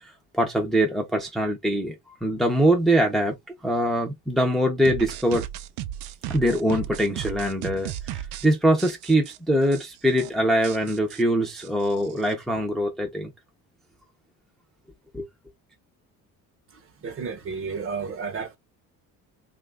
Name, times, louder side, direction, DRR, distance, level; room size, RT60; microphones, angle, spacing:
voice 1, 0.0-3.4 3.6-5.4 6.3-13.3 15.1-15.3, right 1 dB, ahead, 0.6 m, -23 dB
sound 1, 4.9-8.5 8.8-9.4 9.7-9.8 10.1-10.3 10.6-12.3, right 12 dB, 65° right, 0.5 m, -35 dB
voice 2, 16.7-18.6, right 5 dB, 35° right, 0.8 m, -32 dB
3.1 x 2.5 x 3.3 m
cardioid pair, 150°, 36 cm